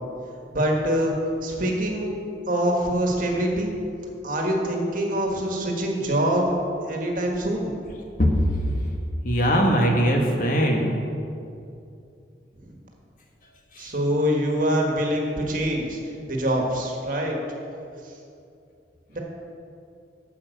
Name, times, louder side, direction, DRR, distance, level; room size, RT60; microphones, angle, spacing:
voice 1, 0.5-1.1 1.4-2.2 2.5-3.7 4.2-6.5 6.8-7.7 12.6-12.7 13.8-16.0 16.3-17.4 18.0-18.1 19.1-19.2, equal, 50° right, 0 dB, 1.7 m, -24 dB
voice 2, 9.2-10.9 13.7-13.9, equal, 50° left, 1 dB, 1.5 m, -20 dB
11.0 x 7.2 x 6.6 m, 2.6 s
head